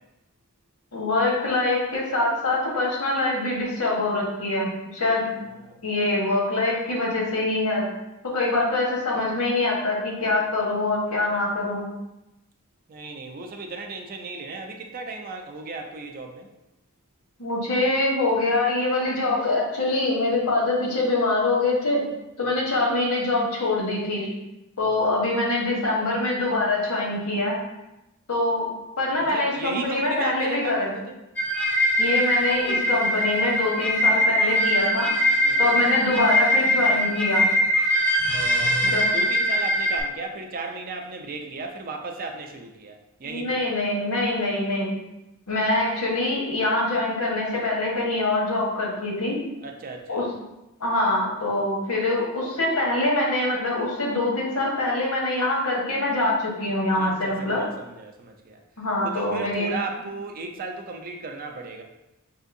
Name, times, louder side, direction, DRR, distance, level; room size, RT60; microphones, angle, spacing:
voice 1, 0.9-5.4 5.8-7.9 8.2-11.9 17.4-22.0 22.4-24.3 24.8-27.6 28.3-28.7 29.0-30.9 32.0-35.1 35.6-37.5 38.9-39.1 43.2-45.0 45.5-49.4 50.1-50.2 50.8-57.7 58.8-59.7, left 2 dB, 85° left, -3 dB, 1.2 m, -24 dB
voice 2, 12.9-16.5 22.4-22.6 24.8-24.9 29.2-31.2 35.4-35.6 38.3-43.6 49.6-50.3 56.9-58.6 59.0-61.8, right 3 dB, 40° right, 3 dB, 0.4 m, -36 dB
sound 1, 31.4-40.0, equal, 10° left, 0.6 m, -22 dB
5.5 x 2.6 x 2.6 m, 0.94 s
head